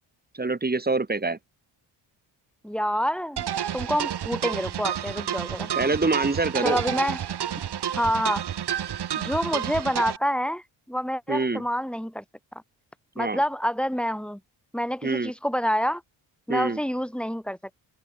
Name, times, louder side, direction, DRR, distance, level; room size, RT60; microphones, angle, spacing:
voice 1, 0.3-1.4 5.8-6.8 11.3-11.6 13.2-13.4 15.0-15.3 16.5-16.8, right 3 dB, 20° right, 2.7 m, -25 dB
voice 2, 2.6-3.5 3.7-5.7 6.6-7.2 7.9-8.4 9.2-12.2 13.1-14.4 14.7-16.0 16.5-17.6, equal, ahead, 2.9 m, -27 dB
sound 1, 3.4-10.2, right 9 dB, 50° right, 1.5 m, -30 dB
supercardioid pair, 55°, 49 cm